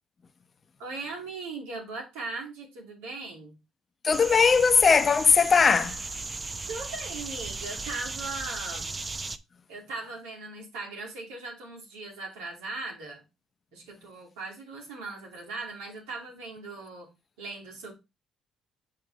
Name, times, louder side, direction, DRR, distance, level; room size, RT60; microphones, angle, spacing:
voice 1, 0.8-3.6 6.7-8.9 9.7-13.2 13.7-17.1 17.4-17.9, right 3 dB, 85° right, 2.6 m, -39 dB
voice 2, 4.0-6.1, left 5 dB, 40° left, 0.7 m, -20 dB
sound 1, 4.1-9.4, right 3 dB, 30° right, 0.6 m, -36 dB
6.6 x 5.0 x 3.2 m
hypercardioid pair, 55°, 0 cm